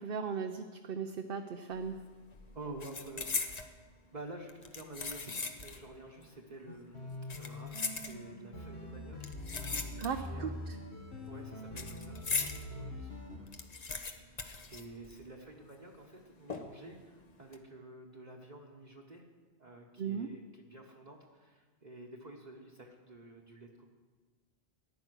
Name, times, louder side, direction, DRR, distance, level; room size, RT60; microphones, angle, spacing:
voice 1, 0.0-2.0 10.0-10.8 20.0-20.3, right 6 dB, 60° right, 5 dB, 0.8 m, -37 dB
sound 1, 1.7-2.0 2.3-3.7 4.5-5.9 6.2-6.3 7.1-8.5 9.2-10.4 10.7-12.6 13.0-13.1 13.3-15.4 15.7-15.8 16.5-16.9 17.3-17.6, left 4 dB, 40° left, 0.9 m, -39 dB
voice 2, 2.5-3.7 4.1-10.5 11.3-14.2 14.7-19.3 19.6-23.9, right 2 dB, 40° right, -1 dB, 1.2 m, -50 dB
sound 2, 6.7-13.4, left 1 dB, 70° left, 1.9 m, -44 dB
14.0 x 10.5 x 6.3 m, 1.4 s
omnidirectional pair, 1.1 m